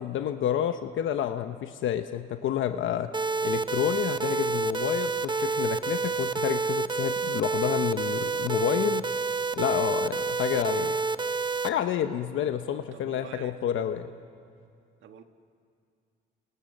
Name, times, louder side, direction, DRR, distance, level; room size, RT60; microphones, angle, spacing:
voice 1, 0.0-3.1 3.4-9.0 9.5-11.0 11.6-14.1, left 10 dB, 75° left, 8 dB, 1.1 m, -29 dB
sound 1, 3.1-11.7, right 4 dB, 25° right, 0.8 m, -28 dB
voice 2, 12.7-13.6 15.0-15.2, right 8 dB, 75° right, 6 dB, 1.8 m, -46 dB
30.0 x 29.0 x 6.7 m, 2.3 s
cardioid pair, 90°, 20 cm